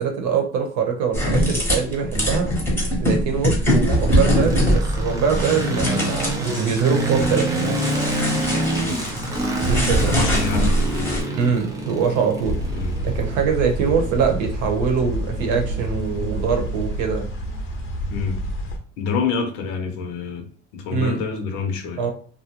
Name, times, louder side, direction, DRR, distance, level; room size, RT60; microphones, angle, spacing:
voice 1, 0.0-2.5 3.0-7.8 9.6-10.2 11.4-12.6 13.0-17.3 20.9-21.2 22.0-22.1, right 6 dB, 65° right, 0.8 m, -23 dB
sound 1, 1.1-11.2, equal, 5° left, 0.8 m, -22 dB
sound 2, 3.8-17.9, right 1 dB, 10° right, 0.3 m, -27 dB
voice 2, 10.1-11.2 12.7-13.0 18.1-18.4 19.0-22.0, left 5 dB, 80° left, 0.7 m, -27 dB
sound 3, 12.4-18.8, equal, 40° left, 0.6 m, -28 dB
2.4 x 2.2 x 2.9 m
cardioid pair, 140°, 32 cm